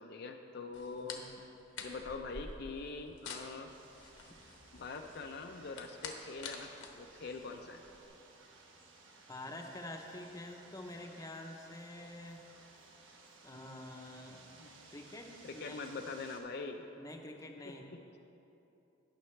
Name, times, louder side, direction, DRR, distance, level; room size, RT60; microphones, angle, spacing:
voice 1, 0.0-1.4 1.8-3.7 4.7-7.8 15.4-16.9 17.6-18.0, left 4 dB, 55° left, 4 dB, 0.5 m, -44 dB
sound 1, 0.7-8.1, left 4 dB, 75° left, 1.0 m, -49 dB
sound 2, 3.7-16.4, right 3 dB, 75° right, 1.1 m, -59 dB
voice 2, 9.3-12.4 13.4-15.8 17.0-17.8, left 1 dB, 15° left, 2 dB, 0.7 m, -47 dB
19.0 x 6.7 x 3.2 m, 3.0 s
head